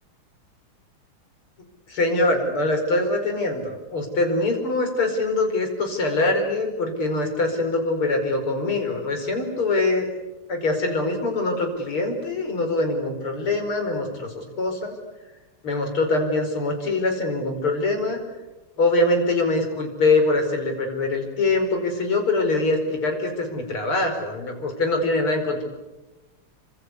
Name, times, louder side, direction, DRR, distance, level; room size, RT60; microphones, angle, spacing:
voice 1, 1.9-10.1 10.5-14.9 15.6-18.2 18.8-25.6, left 2 dB, 80° left, 4 dB, 5.9 m, -23 dB
28.0 x 25.5 x 8.4 m, 1.1 s
omnidirectional pair, 2.3 m